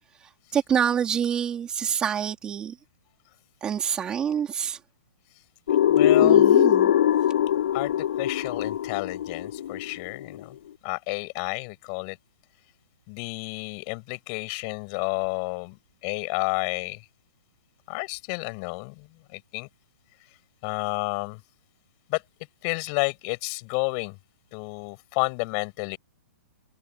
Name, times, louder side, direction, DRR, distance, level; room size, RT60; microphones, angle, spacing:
voice 1, 0.2-2.8 3.6-4.8 6.2-6.9, right 8 dB, 10° right, 3.9 m, -27 dB
sound 1, 5.7-10.4, left 10 dB, 50° left, 5.3 m, -21 dB
voice 2, 5.9-6.6 7.7-10.6 10.8-12.2 13.1-15.8 16.0-17.0 17.9-19.7 20.6-21.4 22.1-22.2 22.6-24.2 24.5-26.0, left 35 dB, 25° left, 7.7 m, -31 dB
hypercardioid pair, 180°, 8 cm